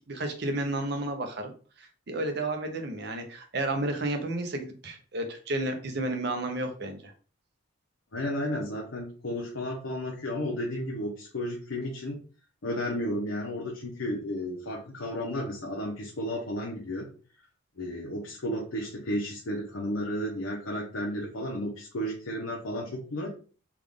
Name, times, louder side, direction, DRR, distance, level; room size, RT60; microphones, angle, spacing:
voice 1, 0.1-1.5 1.8-7.1, right 2 dB, 55° right, 5 dB, 0.7 m, -32 dB
voice 2, 8.1-12.2 12.6-17.1 17.8-23.3, left 1 dB, 80° left, -1 dB, 0.7 m, -33 dB
3.6 x 2.4 x 3.4 m, 0.39 s
head